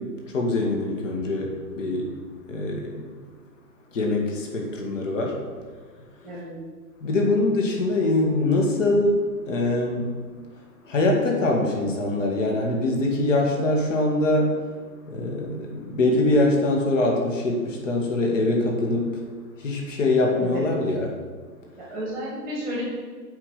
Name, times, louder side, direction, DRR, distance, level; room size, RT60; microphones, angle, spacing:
voice 1, 0.3-2.1 2.5-3.1 3.9-5.4 7.0-10.2 10.9-14.7 15.1-19.2 19.6-21.1, left 2 dB, 50° left, 0 dB, 2.2 m, -23 dB
voice 2, 6.2-6.5 20.4-20.6 21.8-22.8, equal, 5° left, -5 dB, 1.7 m, -32 dB
8.1 x 5.2 x 6.6 m, 1.5 s
hypercardioid pair, 150°, 49 cm